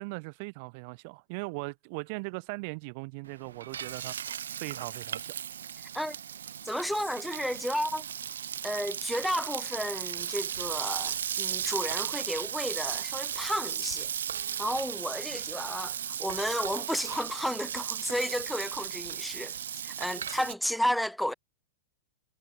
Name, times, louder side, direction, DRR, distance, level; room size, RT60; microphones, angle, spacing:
voice 1, 0.0-4.2 4.6-5.3, right 31 dB, 50° right, 3.8 m, -39 dB
Frying (food), 3.2-20.5, right 9 dB, 90° right, 0.8 m, -36 dB
voice 2, 6.6-8.0 8.6-14.1 14.6-21.3, equal, ahead, 0.6 m, -32 dB
hypercardioid pair, 135°, 0 cm